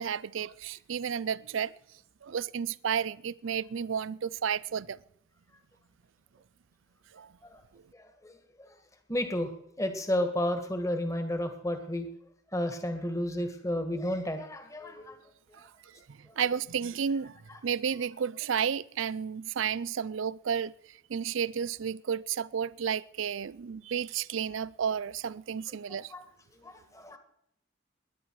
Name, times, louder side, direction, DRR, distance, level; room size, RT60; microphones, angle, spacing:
voice 1, 0.0-1.7 2.2-5.0 7.1-7.3 15.5-17.4 17.6-20.7 21.1-26.1, right 7 dB, 70° right, 0.4 m, -32 dB
voice 2, 7.9-8.8 9.1-9.5 9.8-12.1 12.5-15.2 16.3-16.4 17.5-17.6 26.1-26.2 26.6-27.2, left 1 dB, 15° left, 1.7 m, -32 dB
20.0 x 10.5 x 4.7 m
head